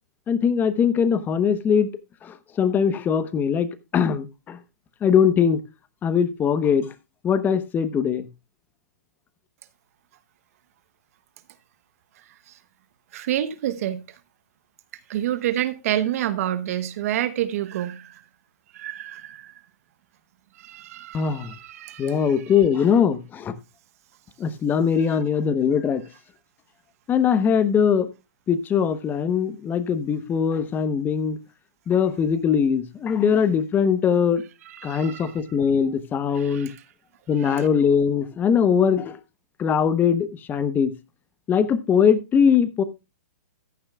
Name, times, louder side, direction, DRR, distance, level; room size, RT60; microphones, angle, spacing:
voice 1, 0.3-1.9 2.2-4.6 5.0-5.6 6.0-6.9 7.2-8.3 21.1-21.5 22.0-23.5 24.4-26.0 27.1-28.1 28.5-31.4 31.9-34.4 34.8-36.7 37.3-39.2 39.6-40.9 41.5-42.8, left 7 dB, 20° left, 1.0 m, -21 dB
voice 2, 13.1-14.0 15.1-18.2 18.7-19.5 20.6-22.4 34.7-35.3 36.3-36.8 37.4-37.7, right 12 dB, 55° right, 1.0 m, -28 dB
14.5 x 10.0 x 2.3 m
hypercardioid pair, 130°, 9 cm